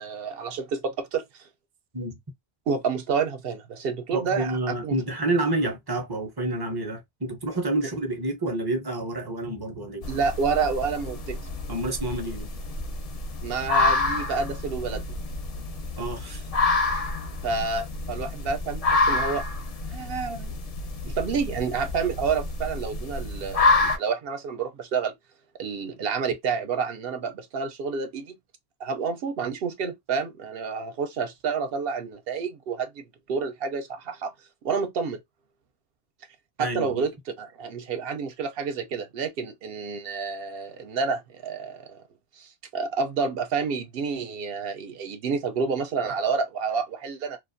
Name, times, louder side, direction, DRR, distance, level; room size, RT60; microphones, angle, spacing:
voice 1, 0.0-1.4 2.7-4.6 4.8-5.0 10.1-11.4 13.4-15.2 17.4-19.4 19.9-20.5 21.0-25.2 25.6-28.4 28.8-34.3 34.6-35.2 36.6-37.1 37.4-42.0 42.4-47.4, right 5 dB, 65° right, 0.7 m, -29 dB
voice 2, 4.1-10.1 11.7-12.5 16.0-16.5 36.6-37.0, right 2 dB, 30° right, 0.5 m, -29 dB
sound 1, 10.0-24.0, left 3 dB, 50° left, 0.4 m, -28 dB
2.4 x 2.3 x 2.5 m
omnidirectional pair, 1.1 m